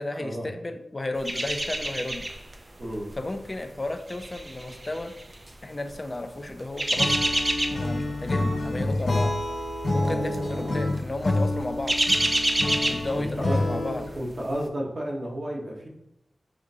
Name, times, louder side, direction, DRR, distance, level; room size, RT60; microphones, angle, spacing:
voice 1, 0.0-2.2 3.2-5.1 5.6-7.2 7.7-9.3 9.9-12.0 12.9-14.1, left 2 dB, 35° left, 7 dB, 0.4 m, -33 dB
sound 1, 1.2-2.6 2.9-3.1 3.8-5.5 6.5-8.0 8.4-8.7 8.9-9.1 10.0-10.4 10.7-10.9 11.4-13.7 14.0-14.1, right 1 dB, 30° right, 0.4 m, -27 dB
voice 2, 2.8-3.1 10.0-10.8 13.1-13.6 14.1-15.9, right 1 dB, 45° right, -3 dB, 1.2 m, -32 dB
Acoustic guitar / Strum, 7.0-14.2, left 2 dB, 70° left, 1.4 m, -28 dB
6.1 x 2.5 x 2.7 m, 0.83 s
wide cardioid pair, 85°, 0 cm